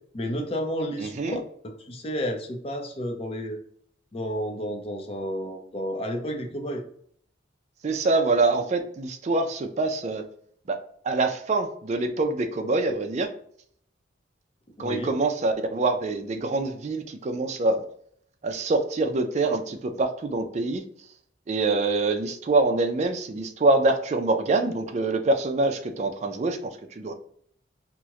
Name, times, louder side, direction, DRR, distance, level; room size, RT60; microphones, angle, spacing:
voice 1, 0.1-1.4 1.6-3.6 4.1-6.8 14.8-15.1, equal, 30° left, 3 dB, 0.5 m, -31 dB
voice 2, 1.0-1.4 7.8-10.2 10.7-10.8 11.0-13.3 14.8-17.8 18.4-20.8 21.5-27.1, right 3 dB, 35° right, 4 dB, 0.4 m, -25 dB
2.9 x 2.1 x 3.5 m, 0.63 s
head